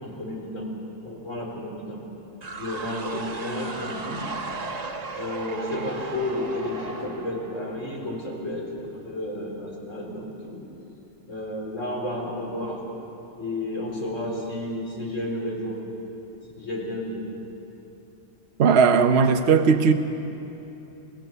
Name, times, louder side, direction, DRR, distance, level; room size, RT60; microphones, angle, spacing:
voice 1, 0.0-0.7 1.0-2.1 2.6-4.2 5.2-10.6 11.3-12.8 13.4-15.8 16.6-17.3, left 1 dB, 70° left, -2 dB, 4.3 m, -32 dB
sound 1, 2.4-8.2, right 3 dB, 35° right, 1.1 m, -36 dB
voice 2, 18.6-19.9, right 5 dB, 55° right, 6 dB, 1.1 m, -17 dB
29.0 x 17.0 x 6.9 m, 3.0 s
omnidirectional pair, 1.4 m